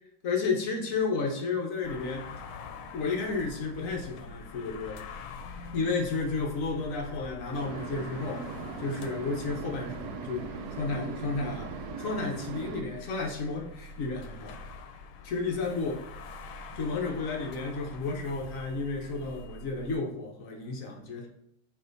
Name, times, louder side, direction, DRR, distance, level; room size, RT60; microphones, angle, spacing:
voice 1, 0.2-2.3 2.9-5.0 5.7-8.4 8.8-11.7 12.0-14.6 15.2-16.0 16.7-21.3, left 4 dB, 60° left, 1 dB, 0.9 m, -32 dB
sound 1, 1.8-19.9, left 3 dB, 80° left, 1.5 m, -45 dB
sound 2, 7.5-12.8, right 4 dB, 70° right, 0.9 m, -39 dB
8.4 x 2.9 x 4.0 m, 0.78 s
omnidirectional pair, 2.3 m